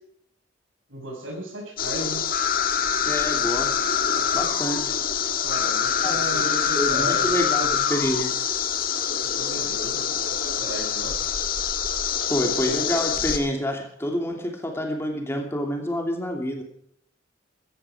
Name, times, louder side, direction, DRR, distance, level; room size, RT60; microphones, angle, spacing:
voice 1, 0.9-2.2 5.4-7.8 9.2-11.2, right 1 dB, 80° right, 0 dB, 6.0 m, -35 dB
sound 1, 1.8-13.4, left 7 dB, 45° left, 1.8 m, -25 dB
voice 2, 3.0-3.7 4.1-4.9 6.0-6.5 6.8-8.4 12.3-16.6, equal, 15° left, 2 dB, 2.8 m, -28 dB
16.5 x 14.5 x 5.0 m, 0.67 s
head